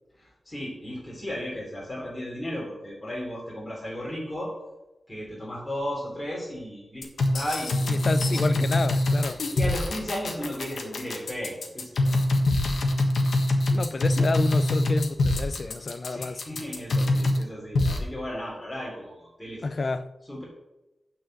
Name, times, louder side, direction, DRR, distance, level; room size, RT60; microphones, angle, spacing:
voice 1, 0.2-4.5 5.1-7.0 7.3-8.5 9.5-12.2 16.1-19.6 20.2-20.4, equal, 10° left, 3.3 m, -35 dB
sound 1, 7.0-17.4 17.8-18.0, left 2 dB, 85° left, 1.4 m, -24 dB
voice 2, 7.9-9.4 13.7-16.4 19.6-20.1, left 3 dB, 45° left, 0.5 m, -29 dB
9.2 x 4.9 x 7.7 m
wide cardioid pair, 110°, 0 cm